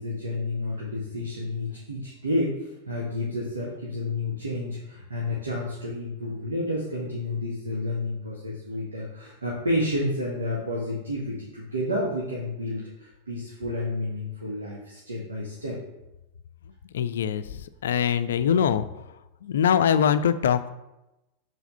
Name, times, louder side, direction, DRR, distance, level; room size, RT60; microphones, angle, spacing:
voice 1, 0.0-15.8, left 1 dB, 75° right, -4 dB, 1.4 m, -30 dB
voice 2, 16.9-18.9 19.4-20.7, left 8 dB, 60° left, 13 dB, 0.4 m, -23 dB
7.0 x 4.2 x 5.5 m, 0.97 s
figure-of-eight pair, 90°, 0 cm